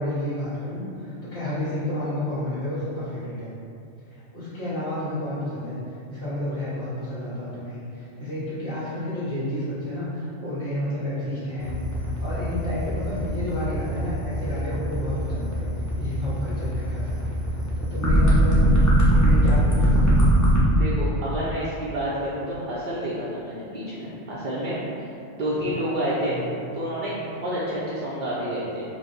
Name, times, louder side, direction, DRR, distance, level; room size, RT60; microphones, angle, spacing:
voice 1, 0.0-3.5 4.3-11.8 12.2-17.4 17.7-18.8 19.1-20.3 25.5-25.8 26.2-26.5, left 1 dB, 70° left, -14 dB, 1.6 m, -31 dB
sound 1, 11.6-20.6, right 1 dB, 20° left, 0.5 m, -20 dB
voice 2, 20.7-24.8 25.3-26.4 26.7-28.8, equal, 55° right, -8 dB, 0.6 m, -29 dB
4.7 x 2.0 x 3.9 m, 2.6 s
omnidirectional pair, 1.3 m